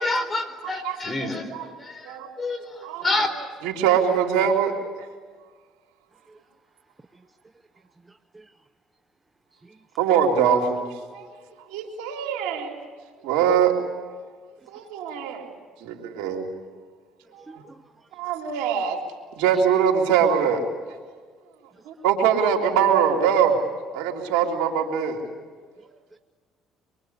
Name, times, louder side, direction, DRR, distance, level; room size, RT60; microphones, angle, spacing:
voice 1, 0.0-1.5 1.8-3.3, left 2 dB, 25° left, 9 dB, 4.4 m, -28 dB
voice 2, 0.6-1.7 2.0-2.3 2.8-3.1 3.6-5.1 10.0-11.3 11.7-12.7 13.2-13.8 14.7-15.5 15.8-16.5 17.3-17.6 18.1-19.0 19.3-20.6 21.9-23.6 23.9-25.2, right 7 dB, 90° right, 1 dB, 3.6 m, -23 dB
voice 3, 8.1-8.5 9.5-9.8 17.4-17.8 19.5-19.6 26.1-26.2, right 3 dB, 20° right, 11 dB, 0.9 m, -49 dB
25.5 x 24.0 x 8.2 m, 1.6 s
supercardioid pair, 90°, 0 cm